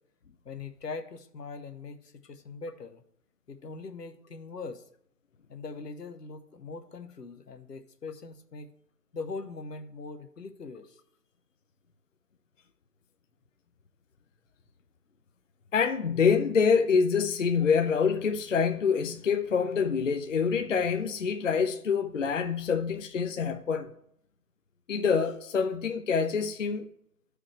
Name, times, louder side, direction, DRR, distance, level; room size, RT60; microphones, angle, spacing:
voice 1, 0.4-3.0 3.5-4.9 5.5-8.7 9.1-11.0, left 4 dB, 85° left, 1.0 m, -41 dB
voice 2, 15.7-23.9 24.9-26.9, left 6 dB, 55° left, 0.5 m, -26 dB
13.0 x 4.9 x 3.3 m
figure-of-eight pair, 155°, 47 cm